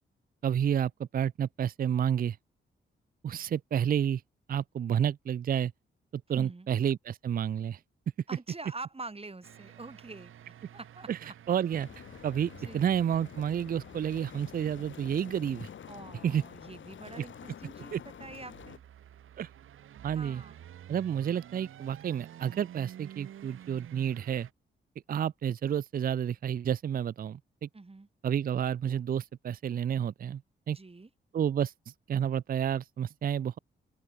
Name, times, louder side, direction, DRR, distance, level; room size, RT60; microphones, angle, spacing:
voice 1, 0.4-2.4 3.2-4.2 4.5-5.7 6.1-7.8 11.1-11.2 11.5-11.9 12.2-15.7 16.2-16.4 17.9-18.0 19.4-19.5 20.0-20.4 20.9-24.5 25.1-27.7 28.2-30.4 30.7-30.8 31.3-31.7 32.1-33.6, right 9 dB, 45° right, 0.4 m, -30 dB
voice 2, 6.3-6.7 8.3-11.3 12.5-12.9 15.9-18.8 20.2-20.6 27.7-28.1 30.7-31.1, right 3 dB, 30° right, 7.3 m, -45 dB
sound 1, 9.4-24.5, right 11 dB, 75° right, 1.6 m, -52 dB
sound 2, 11.7-18.8, left 8 dB, 65° left, 2.8 m, -48 dB
open air
supercardioid pair, 55°, 21 cm